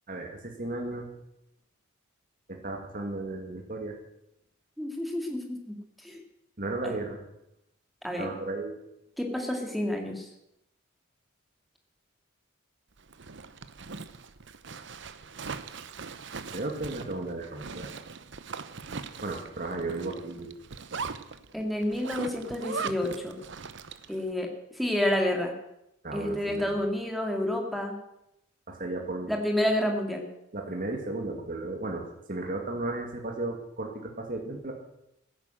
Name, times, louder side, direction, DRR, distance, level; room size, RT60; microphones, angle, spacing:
voice 1, 0.1-1.1 2.5-3.9 6.6-7.2 8.2-8.7 16.5-17.9 19.2-20.5 26.0-26.7 28.7-29.3 30.5-32.0 32.3-34.7, right 2 dB, 40° right, 2 dB, 2.2 m, -34 dB
voice 2, 4.8-6.2 6.8-6.9 8.0-8.3 9.2-10.3 21.5-23.3 24.1-24.5 24.7-25.5 26.1-27.9 29.3-30.3, left 1 dB, ahead, 2 dB, 2.3 m, -29 dB
Zipper (clothing), 13.0-24.2, right 5 dB, 60° right, 0.9 m, -40 dB
16.0 x 10.0 x 7.7 m, 0.83 s
head